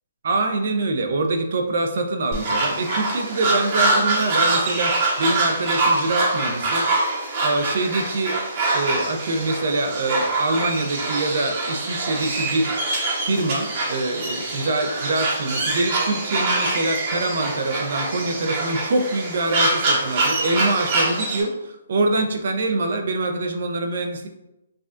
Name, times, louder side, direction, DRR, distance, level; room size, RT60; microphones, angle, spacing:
voice 1, 0.2-6.9 7.4-8.4 8.7-12.7 13.2-24.3, right 2 dB, 65° right, 5 dB, 0.5 m, -24 dB
sound 1, 2.3-21.4, right 2 dB, 40° right, 0.9 m, -24 dB
4.8 x 2.3 x 2.5 m, 0.93 s
hypercardioid pair, 150°, 0 cm